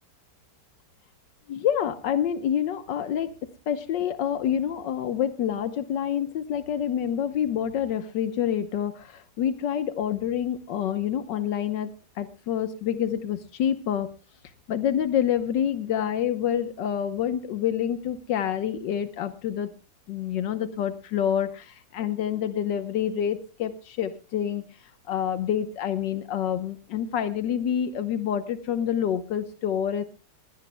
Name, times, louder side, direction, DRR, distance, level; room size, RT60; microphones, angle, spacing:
voice 1, 1.5-3.3 3.7-14.1 14.7-19.7 20.1-24.6 25.1-30.0, left 9 dB, 85° left, 10 dB, 1.6 m, -27 dB
23.0 x 16.0 x 2.2 m, 0.31 s
omnidirectional pair, 1.9 m